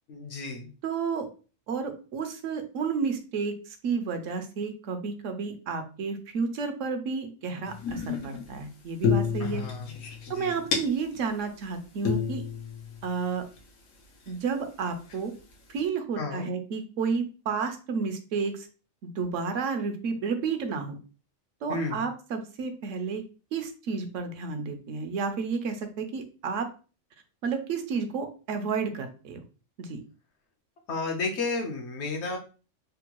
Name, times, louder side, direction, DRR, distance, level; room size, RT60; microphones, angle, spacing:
voice 1, 0.1-0.7 9.4-9.9 10.3-10.6 16.2-16.5 21.7-22.1 30.9-32.4, left 3 dB, 65° left, 3 dB, 0.9 m, -32 dB
voice 2, 0.8-1.3 1.7-9.6 10.3-12.4 13.0-13.4 14.3-15.3 15.7-18.7 19.2-21.0 21.6-23.2 23.5-26.7 27.4-29.4 29.8-30.0, right 5 dB, 75° right, 7 dB, 0.9 m, -31 dB
sound 1, 7.7-8.6 9.0-11.3 11.6-11.7 12.0-13.6 14.3-14.4 15.1-15.5, left 6 dB, 85° left, 1.2 m, -30 dB
3.5 x 2.2 x 2.9 m, 0.36 s
omnidirectional pair, 1.3 m